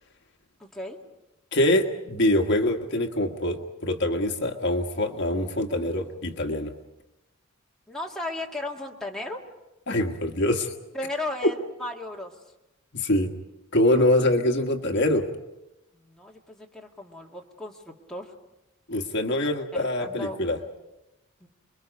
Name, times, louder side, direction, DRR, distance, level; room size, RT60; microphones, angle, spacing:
voice 1, 0.6-1.0 7.9-9.4 10.9-12.4 15.9-18.3 19.7-20.5 21.4-21.5, left 2 dB, 5° left, -2 dB, 2.1 m, -35 dB
voice 2, 1.5-6.7 9.9-10.7 12.9-13.3 13.7-15.3 18.9-20.6, left 1 dB, 55° left, 3 dB, 1.5 m, -24 dB
28.5 x 22.5 x 5.3 m, 0.97 s
head